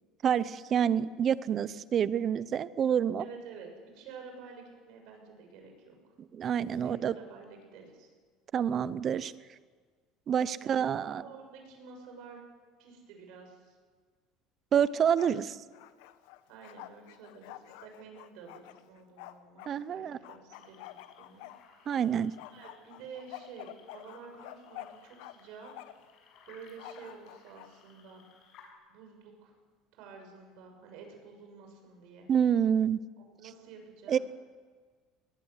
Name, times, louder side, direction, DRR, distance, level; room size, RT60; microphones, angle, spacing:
voice 1, 0.2-3.2 6.3-7.1 8.5-9.3 10.3-11.2 14.7-15.6 19.7-20.2 21.9-22.3 32.3-33.0 34.1-34.2, right 8 dB, 35° right, 16 dB, 0.8 m, -27 dB
voice 2, 3.2-3.7 3.9-6.0 6.8-8.1 10.6-12.4 12.8-13.7 16.5-21.5 22.5-25.7 26.5-28.2 28.9-29.5 29.9-32.3 33.4-34.2, right 5 dB, 65° right, 3 dB, 6.9 m, -50 dB
Bark, 14.9-15.4 15.7-19.7 20.2-22.0 22.4-25.3 25.6-26.1 26.8-27.7, left 15 dB, 90° left, 1.2 m, -48 dB
sound 1, 20.5-28.7, left 6 dB, 55° left, 6.5 m, -60 dB
21.0 x 20.5 x 8.2 m, 1.5 s
cardioid pair, 150°, 0 cm